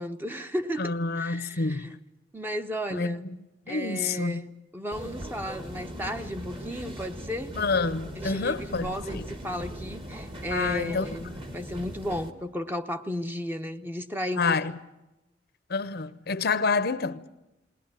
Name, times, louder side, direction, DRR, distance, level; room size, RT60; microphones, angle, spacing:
voice 1, 0.0-1.9 2.3-3.2 3.7-4.5 4.7-7.5 8.2-14.6, equal, 10° right, 0.9 m, -34 dB
voice 2, 0.8-1.9 2.9-3.4 3.7-4.5 7.5-9.2 10.5-11.1 14.4-14.7 15.7-17.3, left 4 dB, 60° left, 0.8 m, -28 dB
sound 1, 4.9-12.3, equal, 30° right, 1.7 m, -39 dB
20.0 x 19.0 x 9.0 m
head